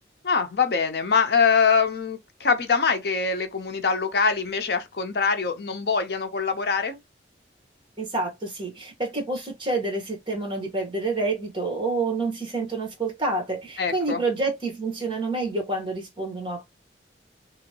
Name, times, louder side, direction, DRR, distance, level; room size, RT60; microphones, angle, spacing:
voice 1, 0.2-7.0 13.8-14.2, left 5 dB, 60° left, 0.6 m, -23 dB
voice 2, 8.0-16.7, right 3 dB, 25° right, 1.3 m, -28 dB
2.9 x 2.8 x 2.8 m
head